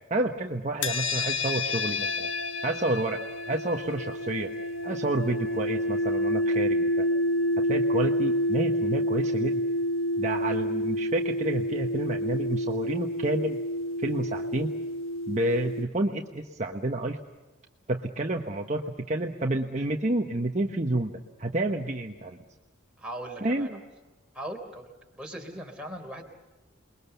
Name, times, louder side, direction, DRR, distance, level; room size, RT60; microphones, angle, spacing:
voice 1, 0.1-2.3 2.6-3.2 3.5-4.5 4.8-7.1 7.7-9.6 10.2-13.6 14.0-14.7 15.3-17.2 17.9-22.4 23.4-23.8, right 1 dB, 35° right, 2 dB, 1.2 m, -29 dB
sound 1, 0.8-15.8, left 1 dB, 75° left, 1.3 m, -28 dB
voice 2, 23.0-23.8 24.3-24.9 25.1-26.3, right 1 dB, 5° right, 0 dB, 3.8 m, -39 dB
29.0 x 21.5 x 6.9 m, 1.1 s
head